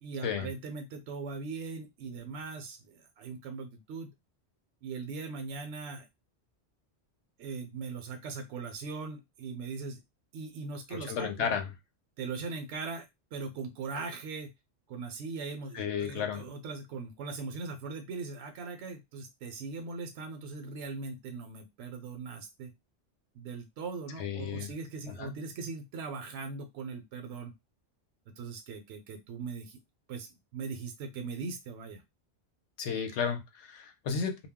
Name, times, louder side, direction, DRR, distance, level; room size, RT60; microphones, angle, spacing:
voice 1, 0.0-4.1 4.8-6.1 7.4-10.0 10.3-11.5 12.2-13.1 13.3-14.5 14.9-22.7 23.3-27.5 28.4-29.8 30.1-32.0, right 4 dB, 80° right, 6 dB, 0.9 m, -40 dB
voice 2, 10.9-11.7 15.7-16.5 24.2-24.7 25.1-25.3 32.8-34.5, left 7 dB, 75° left, 6 dB, 0.9 m, -33 dB
2.2 x 2.0 x 3.5 m, 0.20 s
omnidirectional pair, 1.2 m